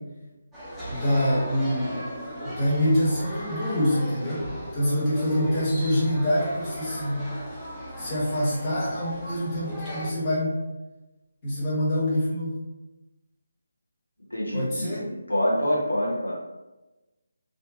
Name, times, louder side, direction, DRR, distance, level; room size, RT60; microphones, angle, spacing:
sound 1, 0.5-10.1, equal, 5° left, 0.5 m, -37 dB
voice 1, 0.9-2.0 2.4-7.3 8.0-10.6 11.4-12.6 14.5-15.0, equal, 20° left, -10 dB, 1.1 m, -25 dB
voice 2, 14.3-16.3, equal, 85° left, -4 dB, 0.7 m, -26 dB
2.5 x 2.5 x 2.4 m, 1.1 s
figure-of-eight pair, 150°, 0 cm